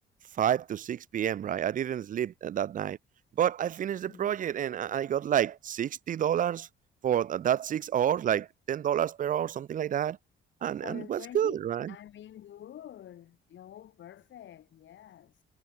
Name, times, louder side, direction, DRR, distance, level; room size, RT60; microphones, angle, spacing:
voice 1, 0.4-3.0 3.4-6.7 7.0-10.2 10.6-11.9, right 10 dB, 40° right, 0.4 m, -29 dB
voice 2, 4.0-4.4 10.7-15.4, left 11 dB, 70° left, 3.0 m, -48 dB
cardioid pair, 90°, 20 cm